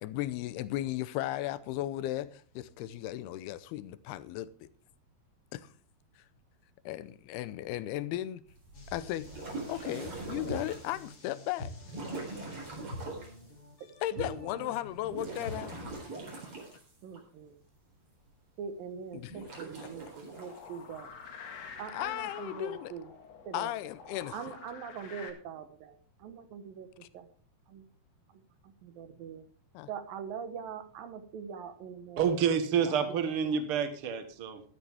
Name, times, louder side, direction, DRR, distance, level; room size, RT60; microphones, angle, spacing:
voice 1, 0.0-4.7 5.5-5.7 6.2-6.3 6.9-8.4 8.9-9.3 9.7-11.7 14.0-15.8 19.1-19.4 21.9-22.9 23.5-24.5 29.7-29.9, left 14 dB, 80° left, 2.6 m, -36 dB
sound 1, 8.5-11.0 11.8-13.4 14.9-17.2 19.2-20.6, right 2 dB, 35° right, 4.5 m, -42 dB
sound 2, 8.7-16.1, left 2 dB, 35° left, 2.8 m, -47 dB
voice 2, 14.1-14.7 17.0-17.6 18.6-21.1 21.8-23.1 23.5-23.7 24.3-27.3 27.7-27.8 28.8-29.4 29.9-32.3 32.8-33.2, right 7 dB, 70° right, 2.7 m, -43 dB
sound 3, 20.3-25.3, left 6 dB, 50° left, 2.4 m, -48 dB
voice 3, 32.2-34.6, right 7 dB, 85° right, 1.2 m, -28 dB
13.0 x 13.0 x 3.5 m
omnidirectional pair, 4.7 m